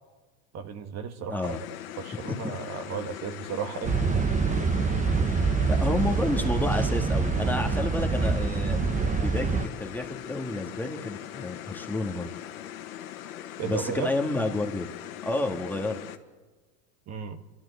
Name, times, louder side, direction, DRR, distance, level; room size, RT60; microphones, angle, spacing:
voice 1, 0.5-1.6 2.0-4.0 13.6-14.1 17.1-17.4, right 6 dB, 40° right, 7 dB, 1.6 m, -34 dB
voice 2, 1.3-1.6 2.3-2.5 5.2-8.8 9.2-12.3 13.6-14.9 15.2-16.0, left 2 dB, 5° left, 2 dB, 1.8 m, -30 dB
sound 1, 1.4-16.2, left 12 dB, 80° left, 1.6 m, -41 dB
sound 2, 3.8-9.7, right 4 dB, 20° right, 1.0 m, -25 dB
29.5 x 13.0 x 8.3 m, 1.3 s
supercardioid pair, 110°, 41 cm